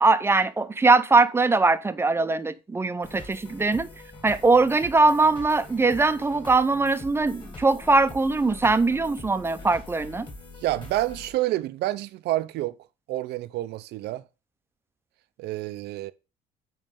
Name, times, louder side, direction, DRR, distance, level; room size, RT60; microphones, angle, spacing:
voice 1, 0.0-3.9 4.2-10.3, right 3 dB, 15° right, 0.5 m, -21 dB
sound 1, 3.0-11.3, left 2 dB, 30° left, 2.2 m, -44 dB
voice 2, 10.6-12.8 13.1-14.2 15.4-16.1, right 16 dB, 75° right, 0.5 m, -28 dB
9.0 x 3.2 x 5.1 m
cardioid pair, 110°, 17 cm